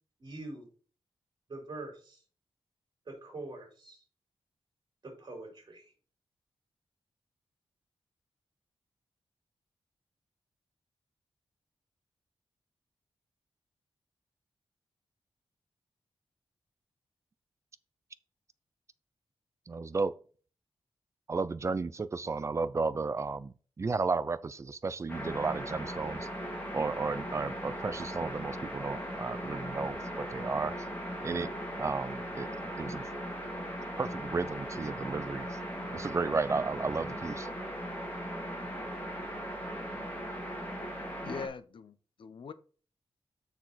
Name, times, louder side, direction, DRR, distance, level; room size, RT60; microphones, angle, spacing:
voice 1, 0.2-0.6 1.5-2.2 3.2-4.0 5.0-5.9, right 2 dB, 50° right, 4.6 m, -44 dB
voice 2, 19.7-20.1 21.3-26.3 26.7-30.7 31.2-31.5 31.8-32.5 32.8-33.0 34.0-35.5 35.9-37.5, right 4 dB, 30° right, 0.5 m, -33 dB
sound 1, 25.1-41.5, equal, 15° left, 2.8 m, -38 dB
voice 3, 41.2-42.5, left 5 dB, 60° left, 0.7 m, -42 dB
6.9 x 6.2 x 4.2 m
wide cardioid pair, 145°, 10 cm